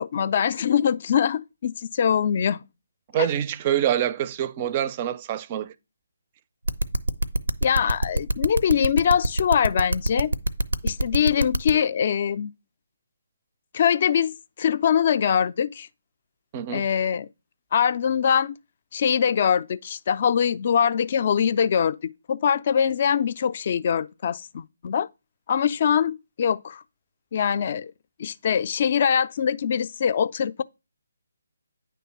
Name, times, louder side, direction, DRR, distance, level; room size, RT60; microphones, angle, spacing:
voice 1, 0.0-2.6 7.6-10.3 10.8-12.5 13.7-15.9 16.7-17.3 17.7-18.5 18.9-25.1 25.5-26.8 27.3-27.9 28.2-30.6, left 8 dB, 40° left, 0.4 m, -23 dB
voice 2, 3.1-5.7 16.5-16.9, right 11 dB, 30° right, 0.4 m, -25 dB
sound 1, 6.7-11.7, right 1 dB, 85° right, 0.5 m, -23 dB
9.3 x 3.3 x 5.7 m
figure-of-eight pair, 145°, 0 cm